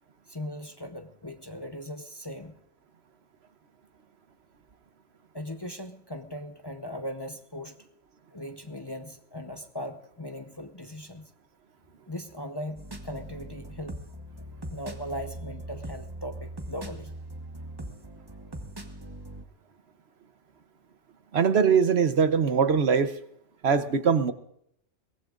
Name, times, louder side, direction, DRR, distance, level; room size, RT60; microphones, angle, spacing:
voice 1, 0.3-2.6 5.3-7.7 8.3-11.3 12.1-14.0 14.7-17.1, equal, 25° left, 6 dB, 0.8 m, -39 dB
sound 1, 12.8-19.4, right 1 dB, 20° right, 1.2 m, -41 dB
voice 2, 21.3-23.1 23.6-24.3, right 6 dB, 60° right, 11 dB, 1.1 m, -22 dB
22.5 x 18.0 x 2.5 m, 0.73 s
omnidirectional pair, 1.2 m